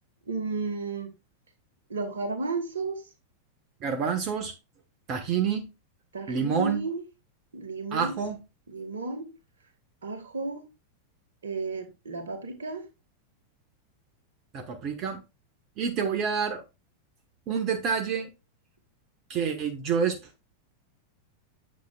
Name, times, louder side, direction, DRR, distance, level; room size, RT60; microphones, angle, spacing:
voice 1, 0.3-1.1 1.9-3.0 6.1-7.0 7.5-8.2 8.7-9.3 10.0-10.6 11.4-12.8, right 3 dB, 65° right, 1.6 m, -33 dB
voice 2, 3.8-4.5 5.1-5.7 6.3-6.8 7.9-8.4 14.5-15.2 15.8-16.6 17.5-18.3 19.3-20.2, right 6 dB, 35° right, 1.2 m, -28 dB
8.5 x 7.6 x 2.3 m
figure-of-eight pair, 90°, 0 cm